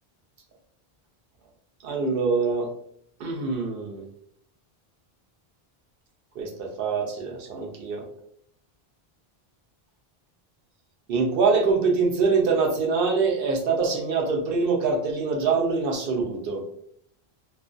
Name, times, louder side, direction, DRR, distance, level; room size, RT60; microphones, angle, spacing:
voice 1, 1.8-2.7 3.2-4.0 6.4-8.0 11.1-16.6, right 4 dB, 65° right, 2 dB, 0.8 m, -24 dB
2.4 x 2.2 x 2.4 m, 0.67 s
omnidirectional pair, 1.0 m